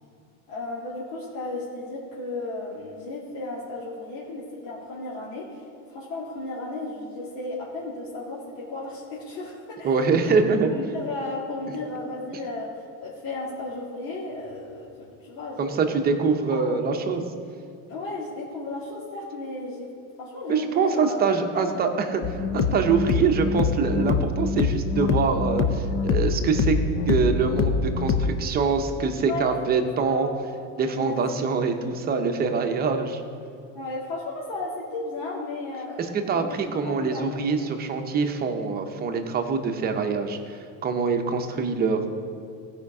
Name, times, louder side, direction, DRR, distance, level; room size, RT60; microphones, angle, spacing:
voice 1, 0.5-5.6 5.9-10.3 10.7-16.1 16.5-16.8 17.9-19.9 20.2-21.3 21.5-21.8 22.2-22.3 29.3-29.5 30.1-30.3 30.9-31.2 33.7-37.3, left 2 dB, 80° left, -7 dB, 2.4 m, -34 dB
voice 2, 9.8-10.7 15.6-17.3 20.5-22.2 22.5-26.8 27.1-30.3 30.8-33.2 36.0-40.4 40.8-42.1, right 5 dB, 25° right, 5 dB, 0.8 m, -24 dB
sound 1, 22.2-28.3, left 4 dB, 35° left, 0.6 m, -24 dB
15.5 x 5.2 x 4.8 m, 2.6 s
cardioid pair, 150°, 38 cm